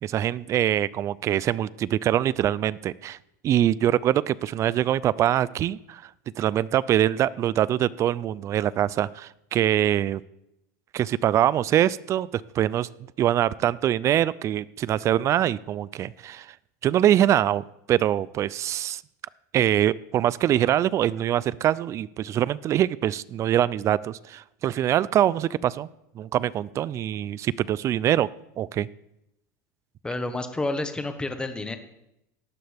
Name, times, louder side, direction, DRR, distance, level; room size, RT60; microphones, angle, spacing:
voice 1, 0.0-3.2 3.4-6.0 6.4-10.2 10.9-12.9 13.2-16.5 16.8-19.0 19.5-25.9 26.2-28.3 28.6-28.9, right 11 dB, 30° right, 20 dB, 0.4 m, -24 dB
voice 2, 30.0-31.8, left 2 dB, 10° left, 7 dB, 1.4 m, -29 dB
18.5 x 12.5 x 3.5 m, 0.83 s
supercardioid pair, 130°, 9 cm